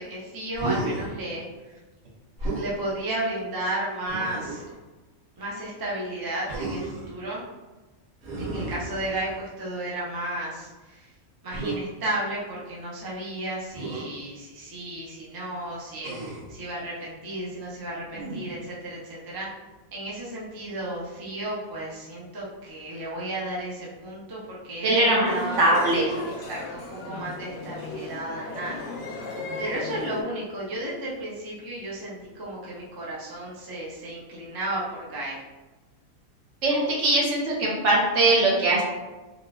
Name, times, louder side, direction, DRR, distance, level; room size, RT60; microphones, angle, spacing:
voice 1, 0.0-1.4 2.6-4.6 5.4-7.4 8.4-11.1 11.4-19.5 19.9-25.7 26.2-28.9 29.6-35.4, right 1 dB, 35° right, -5 dB, 0.3 m, -33 dB
Human voice, 0.5-1.2 2.4-2.7 4.1-4.7 6.5-7.1 8.2-9.4 11.5-11.8 13.7-14.0 16.0-16.5 18.1-18.6, right 2 dB, 80° right, 1.3 m, -32 dB
voice 2, 24.8-26.1 36.6-38.8, right 2 dB, 60° right, -3 dB, 1.1 m, -21 dB
sound 1, 25.2-30.2, left 2 dB, 65° left, 0.8 m, -35 dB
3.8 x 2.3 x 2.3 m, 1.2 s
omnidirectional pair, 1.5 m